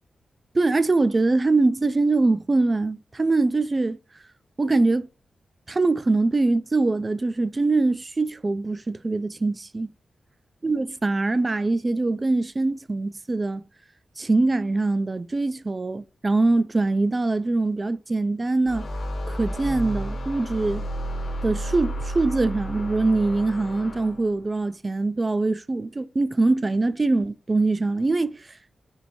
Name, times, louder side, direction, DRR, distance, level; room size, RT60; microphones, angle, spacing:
voice 1, 0.5-4.0 4.6-5.1 5.7-9.9 10.6-13.6 14.2-18.9 19.3-20.8 21.4-28.3, right 3 dB, 30° right, 0.3 m, -23 dB
sound 1, 18.7-24.4, right 1 dB, 60° left, 1.2 m, -32 dB
4.5 x 2.6 x 4.1 m
cardioid pair, 80°, 0 cm